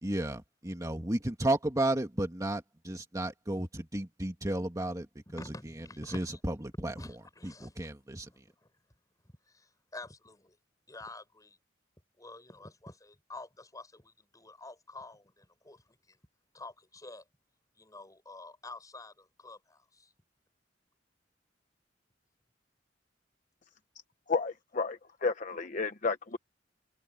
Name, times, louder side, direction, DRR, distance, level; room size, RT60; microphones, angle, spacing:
voice 1, 0.0-5.1 5.3-5.4 6.0-6.5 6.8-6.9 7.4-8.3, right 1 dB, 20° right, 2.0 m, -33 dB
voice 2, 5.3-6.4 6.8-7.8 8.2-8.7 9.5-10.6 10.9-11.6 12.2-16.2 16.5-17.2 17.8-20.1, left 2 dB, 20° left, 6.5 m, -49 dB
voice 3, 24.3-26.4, left 4 dB, 45° left, 0.9 m, -32 dB
head